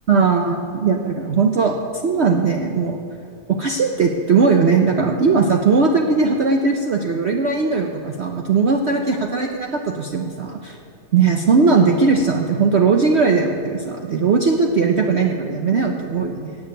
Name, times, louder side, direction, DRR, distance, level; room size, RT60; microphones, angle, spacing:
voice 1, 0.1-1.8 2.0-3.0 3.5-10.8 11.1-16.6, right 4 dB, 50° right, 2 dB, 0.9 m, -18 dB
17.0 x 7.2 x 9.0 m, 2.6 s
omnidirectional pair, 1.8 m